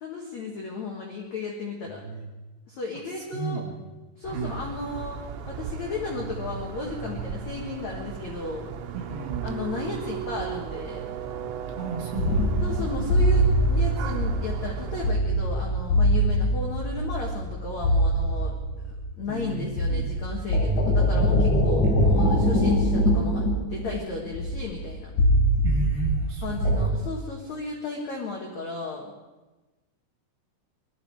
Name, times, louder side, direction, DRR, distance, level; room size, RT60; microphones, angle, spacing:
voice 1, 0.0-2.0 2.7-3.7 4.2-5.2 5.5-8.7 9.4-11.2 12.6-18.8 19.2-25.1 26.4-29.1, left 3 dB, 80° left, -1 dB, 1.6 m, -34 dB
voice 2, 3.2-3.8 4.3-4.6 8.9-9.6 11.7-12.6 19.3-20.2 21.8-22.5 25.6-26.9, right 3 dB, 60° right, 0 dB, 2.9 m, -33 dB
sound 1, 4.2-15.1, right 7 dB, 85° right, 3.8 m, -36 dB
sound 2, 12.2-19.4 19.7-26.8, equal, 40° left, 5.0 m, -23 dB
21.5 x 13.5 x 4.7 m, 1.2 s
omnidirectional pair, 6.0 m